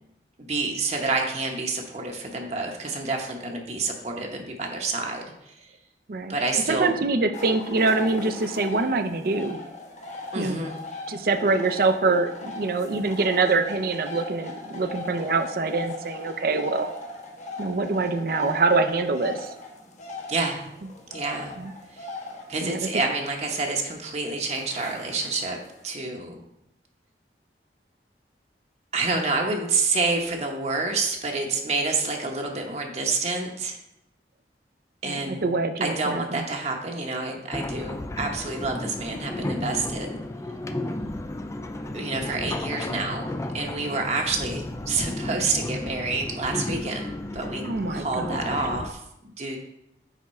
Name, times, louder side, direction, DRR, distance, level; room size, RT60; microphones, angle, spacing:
voice 1, 0.4-5.5 6.3-6.9 10.3-10.8 20.3-20.7 21.1-21.5 21.9-22.1 22.5-25.6 25.8-26.4 28.9-33.8 35.0-35.5 35.8-40.2 41.9-49.6, right 3 dB, 40° right, 1 dB, 0.9 m, -28 dB
voice 2, 6.7-9.6 10.3-10.6 11.1-16.9 17.6-19.5 21.6-21.7 22.6-22.9 35.0-36.4 47.6-48.5, right 3 dB, 55° right, 8 dB, 0.5 m, -25 dB
sound 1, 7.3-25.8, left 2 dB, 40° left, 1.1 m, -39 dB
sound 2, 37.5-48.9, left 1 dB, 15° left, 0.3 m, -33 dB
9.2 x 3.6 x 4.2 m, 0.81 s
head